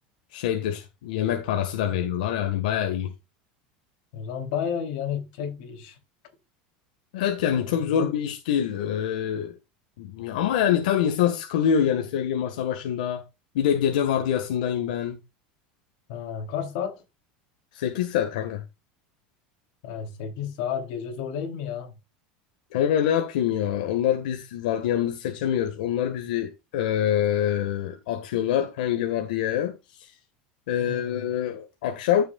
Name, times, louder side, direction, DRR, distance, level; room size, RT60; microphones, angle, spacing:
voice 1, 0.3-3.1 7.1-9.6 10.0-13.2 13.5-15.2 17.7-18.6 22.7-30.1 30.7-32.2, left 9 dB, 85° left, 1.7 m, -25 dB
voice 2, 4.1-6.0 7.6-8.1 16.1-17.0 19.8-21.9 30.8-31.2, left 8 dB, 55° left, 3.5 m, -32 dB
15.0 x 6.6 x 2.4 m
supercardioid pair, 175°, 4 cm